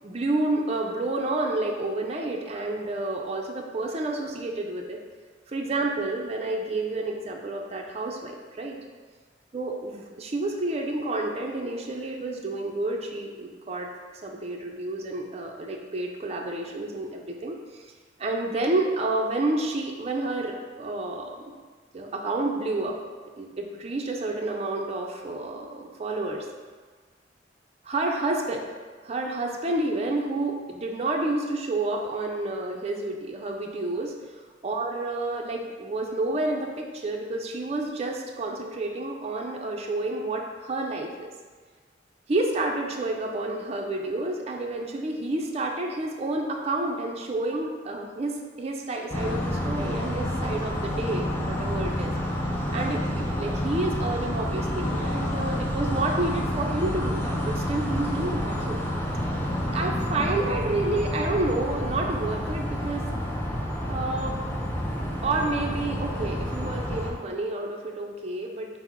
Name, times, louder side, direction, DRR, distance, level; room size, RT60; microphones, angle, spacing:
voice 1, 0.0-5.0 5.5-8.8 9.5-13.9 14.2-17.6 18.2-21.5 21.9-23.0 23.4-26.4 27.8-28.7 29.0-34.1 34.6-41.3 42.3-52.1 52.7-58.8 59.7-63.0 63.9-64.4 65.2-68.7, right 2 dB, 35° right, 0 dB, 0.5 m, -29 dB
sound 1, 49.1-67.1, equal, 10° left, 0.6 m, -29 dB
5.7 x 2.1 x 4.4 m, 1.5 s
head